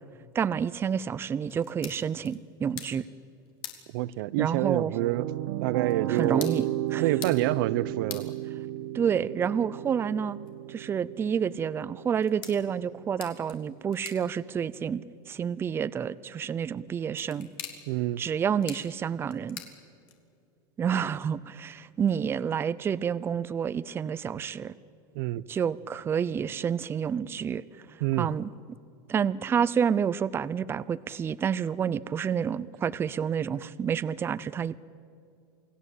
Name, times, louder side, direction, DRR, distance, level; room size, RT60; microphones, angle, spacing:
voice 1, 0.3-3.0 4.4-5.0 6.1-6.7 6.9-7.0 8.9-10.4 10.7-17.5 18.2-19.6 20.8-24.7 25.5-27.6 28.2-28.5 29.1-34.8, right 7 dB, 20° right, 0.6 m, -29 dB
sound 1, 1.4-20.5, left 10 dB, 80° left, 3.5 m, -48 dB
voice 2, 3.9-5.3 5.6-6.5 7.0-8.3 17.9-18.2 25.1-25.4 28.0-28.3, right 16 dB, 70° right, 0.7 m, -27 dB
sound 2, 4.6-13.7, right 13 dB, 90° right, 1.1 m, -34 dB
28.5 x 20.0 x 8.4 m
supercardioid pair, 140°, 11 cm